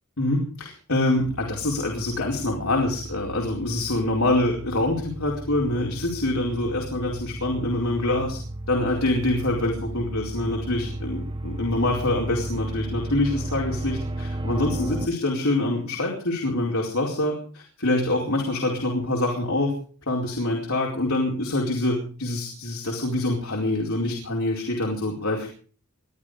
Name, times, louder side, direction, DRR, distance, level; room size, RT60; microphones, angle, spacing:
voice 1, 0.2-8.4 8.7-19.7 20.1-25.5, left 1 dB, 70° left, -1 dB, 4.6 m, -25 dB
sound 1, 1.2-15.1, right 1 dB, 25° right, 1.5 m, -34 dB
22.5 x 12.0 x 5.1 m, 0.42 s
head